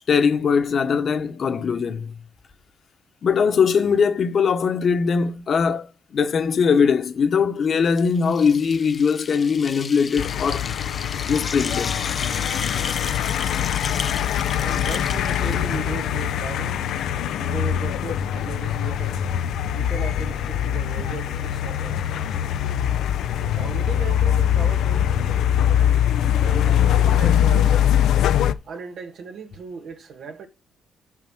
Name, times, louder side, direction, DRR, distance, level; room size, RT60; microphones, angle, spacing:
voice 1, 0.1-2.2 3.2-10.7 11.3-12.0 12.7-12.9, left 6 dB, 50° left, 1.3 m, -21 dB
sound 1, 7.9-16.3, left 4 dB, 35° left, 0.8 m, -34 dB
sound 2, 10.2-28.5, left 10 dB, 80° left, 0.7 m, -22 dB
voice 2, 14.5-16.8 17.4-19.2 19.7-22.0 23.5-25.1 25.8-26.1 26.4-27.9 28.6-30.5, right 5 dB, 65° right, 2.2 m, -37 dB
5.9 x 5.8 x 6.2 m
cardioid pair, 90°, 0 cm